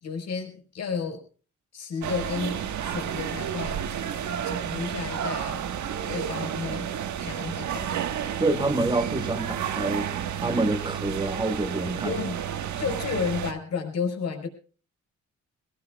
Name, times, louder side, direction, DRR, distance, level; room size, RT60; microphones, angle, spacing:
voice 1, 0.0-1.2 1.7-3.8 4.4-5.6 6.1-6.9 7.2-7.9 12.0-12.4 12.7-14.5, left 5 dB, 55° left, 4.7 m, -32 dB
sound 1, 2.0-13.5, right 9 dB, 70° right, 1.5 m, -31 dB
voice 2, 8.4-10.1 10.4-12.2, right 2 dB, 15° right, 1.6 m, -27 dB
23.0 x 18.5 x 2.3 m
cardioid pair, 100°, 30 cm